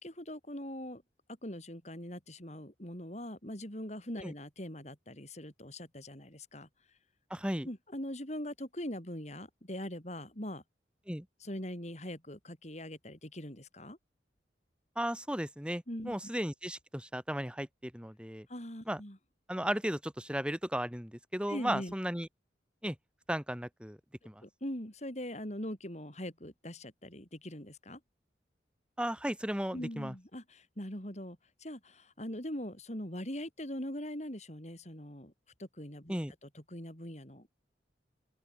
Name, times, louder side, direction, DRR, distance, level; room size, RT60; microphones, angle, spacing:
voice 1, 0.0-1.0 1.4-6.7 7.6-10.6 11.4-14.0 15.9-16.1 18.5-19.2 21.5-21.9 24.4-28.0 29.7-35.3 35.6-36.2 36.5-37.5, left 1 dB, 40° left, 5.8 m, -42 dB
voice 2, 7.3-7.7 11.1-11.3 15.0-18.5 18.9-19.0 19.5-22.3 22.8-23.0 23.3-24.0 24.2-24.4 29.0-30.1 36.1-36.3, equal, 5° right, 6.1 m, -35 dB
open air
head